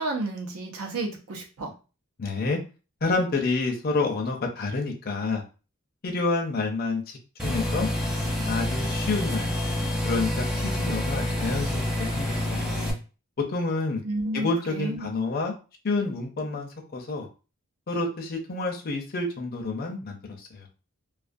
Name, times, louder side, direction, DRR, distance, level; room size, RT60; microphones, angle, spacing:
voice 1, 0.0-1.7 14.0-15.1, right 2 dB, 80° right, 2 dB, 0.6 m, -31 dB
voice 2, 2.2-2.6 3.0-5.4 6.0-7.9 8.5-9.5 10.0-12.7 13.5-14.0 14.3-15.5 15.8-17.3 17.9-20.7, left 3 dB, 45° left, 2 dB, 0.5 m, -28 dB
sound 1, 7.4-12.9, left 1 dB, 5° right, 0.5 m, -27 dB
2.3 x 2.3 x 2.5 m, 0.34 s
head